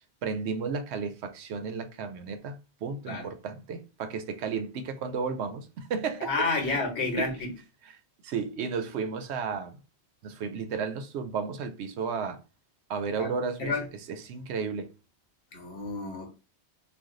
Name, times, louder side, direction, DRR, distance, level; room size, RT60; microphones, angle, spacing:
voice 1, 0.2-6.8 7.2-7.5 8.2-9.8 10.2-12.4 12.9-14.9, right 5 dB, 85° right, 0.8 m, -33 dB
voice 2, 6.2-7.5 13.2-13.3 13.6-13.8 15.5-16.3, left 3 dB, 90° left, 1.2 m, -30 dB
2.5 x 2.2 x 3.6 m
omnidirectional pair, 1.1 m